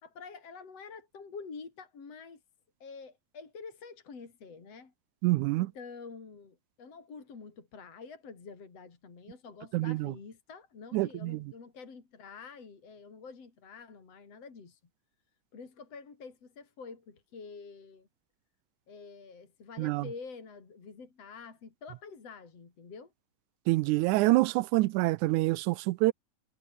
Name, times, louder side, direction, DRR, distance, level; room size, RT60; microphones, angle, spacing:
voice 1, 0.0-2.4 2.8-4.9 5.6-14.8 15.5-18.1 18.9-23.1, left 5 dB, 55° left, 5.0 m, -47 dB
voice 2, 5.2-5.7 9.7-10.1 10.9-11.4 19.8-20.1 23.7-26.1, right 20 dB, 90° right, 2.1 m, -26 dB
omnidirectional pair, 3.4 m